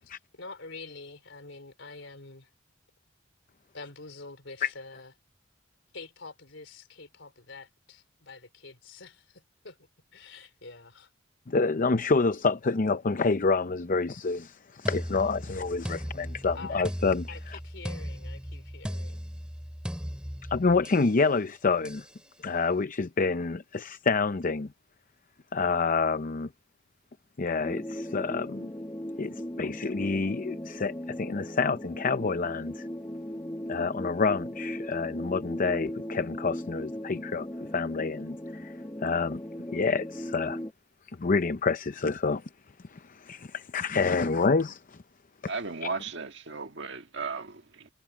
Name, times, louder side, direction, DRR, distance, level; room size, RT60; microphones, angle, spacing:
voice 1, 0.0-2.5 3.7-5.1 5.9-11.1 16.5-16.9 17.3-19.3, left 3 dB, 75° left, 4.0 m, -46 dB
voice 2, 11.5-17.6 20.5-22.0 22.4-24.7 25.5-26.5 27.4-28.7 29.2-32.9 33.7-37.5 37.7-38.7 39.0-39.4 39.7-40.6 41.2-42.4 42.9-45.0 45.8-45.9, left 4 dB, 45° left, 0.6 m, -28 dB
sound 1, 14.9-21.1 21.9-22.1, equal, 5° right, 2.9 m, -37 dB
sound 2, 27.6-40.7, equal, 15° left, 1.8 m, -38 dB
voice 3, 45.5-47.9, right 4 dB, 65° right, 1.7 m, -36 dB
head